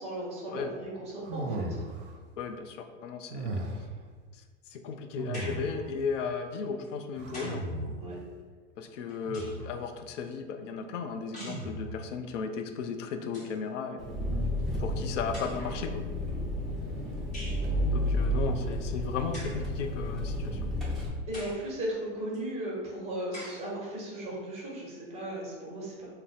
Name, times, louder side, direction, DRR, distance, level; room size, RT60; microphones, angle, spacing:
voice 1, 0.0-1.8 8.0-8.2 18.6-18.7 21.3-26.1, right 1 dB, 15° right, -4 dB, 1.0 m, -36 dB
sound 1, 1.2-2.2 3.3-4.0 5.2-6.0 7.2-8.2 9.2-9.8 11.4-12.1, right 2 dB, 70° right, 0.5 m, -36 dB
voice 2, 2.4-3.6 4.7-7.6 8.8-14.0 14.8-16.0 17.9-20.7, left 5 dB, 80° left, 7 dB, 0.5 m, -35 dB
sound 2, 5.3-5.7 6.8-7.7 8.8-9.7 11.3-11.7 12.8-12.9 13.2-13.6 14.6-14.7 15.3-15.8 17.3-17.7 19.3-19.7 20.3-20.4 21.3-21.7 22.3-22.4 23.3-23.7, left 1 dB, 20° left, 1.2 m, -44 dB
Engine, 14.0-21.1, equal, ahead, 0.6 m, -31 dB
2.5 x 2.1 x 3.9 m, 1.5 s
hypercardioid pair, 100°, 37 cm